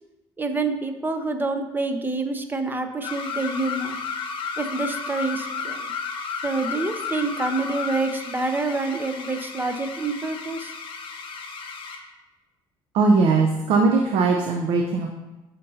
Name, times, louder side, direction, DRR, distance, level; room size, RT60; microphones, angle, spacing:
voice 1, 0.4-4.0 4.6-5.9 6.4-10.7, right 3 dB, 20° right, 7 dB, 0.8 m, -27 dB
sound 1, 3.0-12.1, left 5 dB, 60° left, 0.8 m, -33 dB
voice 2, 12.9-15.1, right 4 dB, 80° right, 2 dB, 0.7 m, -19 dB
8.8 x 5.3 x 2.8 m, 1.1 s
supercardioid pair, 85°, 10 cm